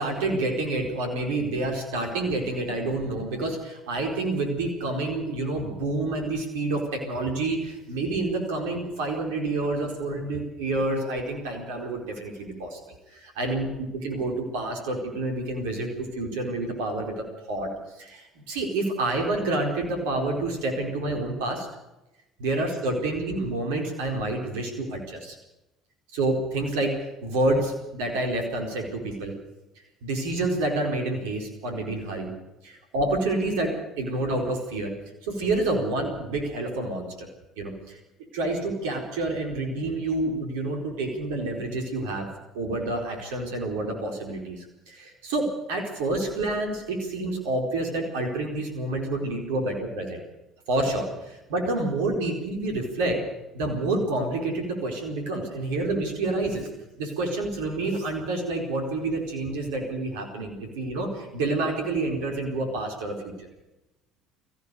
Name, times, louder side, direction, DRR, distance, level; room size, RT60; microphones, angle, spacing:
voice 1, 0.0-12.8 13.1-13.7 14.0-17.7 17.9-21.7 22.4-25.4 26.1-29.3 30.0-32.3 32.6-33.7 34.0-34.9 35.2-37.3 37.6-37.7 38.3-42.3 42.5-50.2 50.7-53.2 53.5-56.7 57.0-63.5, right 2 dB, 70° right, 2 dB, 4.5 m, -28 dB
24.0 x 15.5 x 7.0 m, 0.97 s
figure-of-eight pair, 60°, 0 cm